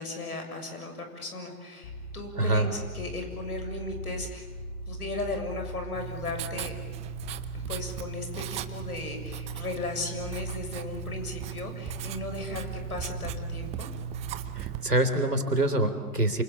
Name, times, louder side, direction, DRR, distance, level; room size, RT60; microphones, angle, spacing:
voice 1, 0.0-4.5 4.9-6.7 7.5-13.9, left 2 dB, 70° left, 5 dB, 7.1 m, -36 dB
sound 1, 1.8-14.6, right 1 dB, 40° left, 4.5 m, -40 dB
voice 2, 2.4-2.7 14.6-16.4, right 2 dB, 85° right, 8 dB, 3.5 m, -25 dB
Writing, 5.9-14.9, right 15 dB, 15° right, 0.7 m, -38 dB
29.0 x 26.5 x 7.2 m, 1.4 s
figure-of-eight pair, 115°, 46 cm